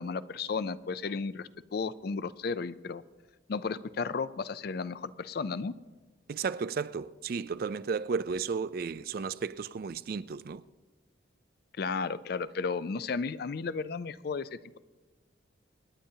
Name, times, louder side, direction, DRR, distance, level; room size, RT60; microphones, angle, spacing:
voice 1, 0.0-3.0 3.5-5.7 11.8-14.8, left 4 dB, 50° left, 0.4 m, -34 dB
voice 2, 6.3-10.6, right 5 dB, 50° right, 0.3 m, -33 dB
26.5 x 10.0 x 2.8 m
head